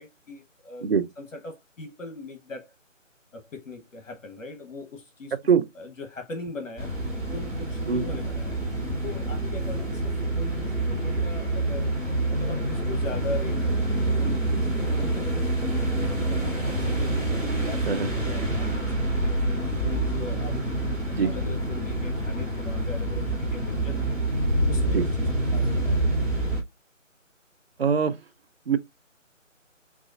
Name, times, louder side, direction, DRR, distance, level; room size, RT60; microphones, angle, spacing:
voice 1, 0.0-0.9 1.2-2.7 3.3-5.3 5.7-6.9 7.3-8.6 9.0-12.0 12.3-15.8 16.3-17.3 17.6-24.2 24.7-26.1, left 3 dB, 75° left, 1.0 m, -40 dB
sound 1, 6.8-26.6, right 1 dB, ahead, 1.2 m, -27 dB
voice 2, 27.8-28.2 28.7-28.8, right 6 dB, 55° right, 0.4 m, -22 dB
4.0 x 2.4 x 2.3 m
figure-of-eight pair, 155°, 39 cm